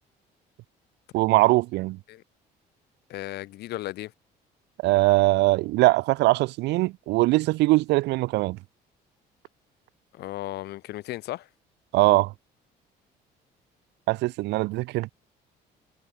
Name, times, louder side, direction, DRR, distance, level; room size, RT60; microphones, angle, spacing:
voice 1, 1.1-2.0 4.8-8.6 11.9-12.3 14.1-15.1, right 20 dB, 85° right, 1.7 m, -21 dB
voice 2, 3.1-4.1 10.1-11.5, left 16 dB, 75° left, 1.8 m, -35 dB
cardioid pair, 110°, 17 cm